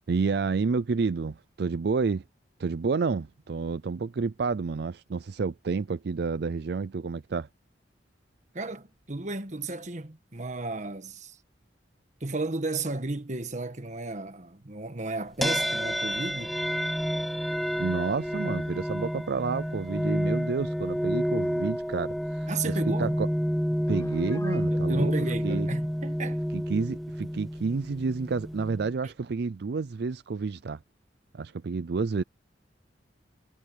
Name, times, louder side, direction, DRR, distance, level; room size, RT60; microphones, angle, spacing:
voice 1, 0.1-2.2 2.6-7.5 17.8-23.3 23.9-25.1 25.4-25.7 26.5-30.8 31.3-32.2, right 4 dB, 60° right, 0.4 m, -30 dB
voice 2, 8.5-11.4 12.2-16.5 22.5-23.2 24.7-26.4 29.0-29.1, right 2 dB, 40° right, 1.5 m, -34 dB
sound 1, 15.4-28.9, equal, ahead, 0.4 m, -29 dB
Piano, 23.9-24.7, left 2 dB, 15° left, 6.1 m, -47 dB
head